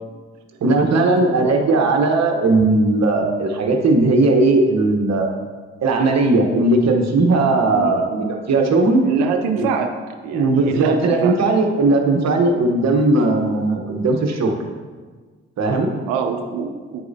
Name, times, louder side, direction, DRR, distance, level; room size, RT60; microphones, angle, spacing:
voice 1, 0.6-5.3 5.8-9.0 9.6-9.7 10.3-14.5 15.6-15.9, right 2 dB, 55° right, 3 dB, 1.0 m, -17 dB
voice 2, 7.6-8.1 9.0-9.9 10.2-11.4 16.1-17.0, right 6 dB, 85° right, 6 dB, 0.6 m, -25 dB
8.9 x 4.8 x 2.7 m, 1.4 s
hypercardioid pair, 45°, 32 cm